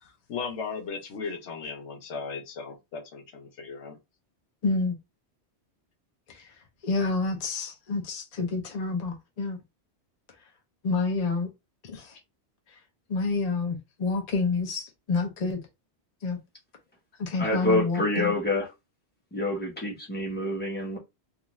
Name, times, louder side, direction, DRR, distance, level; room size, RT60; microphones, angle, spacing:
voice 1, 0.0-4.0, left 5 dB, 85° left, 1.0 m, -37 dB
voice 2, 4.6-4.9 6.8-9.6 10.8-11.5 11.8-12.1 13.1-15.6 16.2-16.4 17.2-18.3, left 3 dB, 45° left, 0.6 m, -28 dB
voice 3, 17.4-18.7 19.3-21.0, left 1 dB, 10° left, 0.8 m, -27 dB
2.5 x 2.3 x 3.0 m
omnidirectional pair, 1.2 m